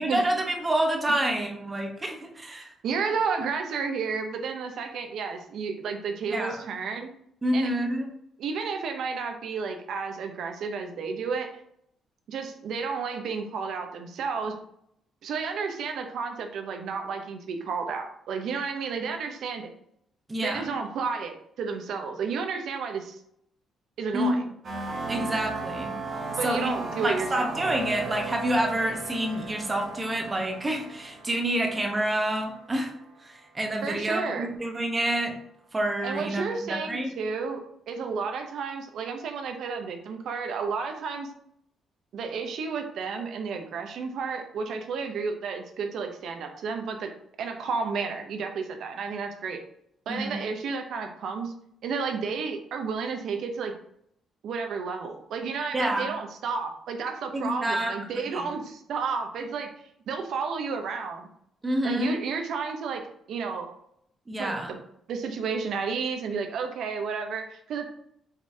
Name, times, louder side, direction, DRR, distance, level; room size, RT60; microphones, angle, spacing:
voice 1, 0.0-2.7 6.3-6.6 7.4-8.1 19.0-19.1 20.3-20.7 24.1-24.4 25.1-25.9 26.4-26.7 27.0-32.9 33.2-35.3 35.7-37.1 50.1-50.4 55.7-56.1 57.3-58.5 61.6-62.1 64.3-64.7, right 1 dB, 25° right, 2 dB, 1.0 m, -28 dB
voice 2, 2.8-7.1 7.5-7.7 8.4-11.5 12.3-14.6 15.2-19.8 20.4-23.2 24.0-24.4 26.3-27.5 33.8-34.5 36.0-37.6 37.9-41.3 42.1-47.1 47.4-49.6 50.1-51.5 51.8-53.7 54.4-59.7 60.1-61.3 61.8-63.7 64.4-64.8 65.1-67.9, right 5 dB, 75° right, 5 dB, 0.6 m, -32 dB
sound 1, 24.6-33.3, right 3 dB, 55° right, 1.1 m, -37 dB
5.1 x 3.1 x 2.7 m, 0.71 s
cardioid pair, 90°, 0 cm